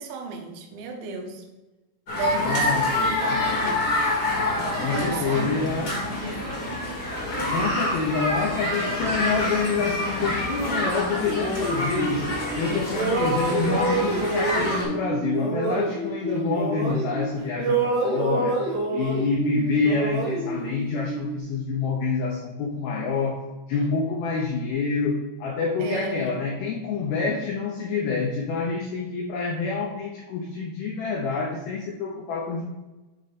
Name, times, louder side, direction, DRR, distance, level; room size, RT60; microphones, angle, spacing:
voice 1, 0.0-1.4 2.1-3.9 4.9-6.7 25.8-26.4, right 4 dB, 80° right, 3 dB, 3.0 m, -34 dB
sound 1, 2.1-14.8, left 1 dB, 70° left, 0.9 m, -27 dB
voice 2, 2.3-3.8 4.8-6.0 7.5-12.3 12.6-18.6 18.9-23.4 23.7-32.6, left 4 dB, 90° left, -1 dB, 2.1 m, -27 dB
sound 2, 11.2-12.6 12.9-17.3 17.6-21.4, right 3 dB, 55° right, 1.2 m, -27 dB
10.0 x 3.8 x 4.0 m, 1.1 s
omnidirectional pair, 5.3 m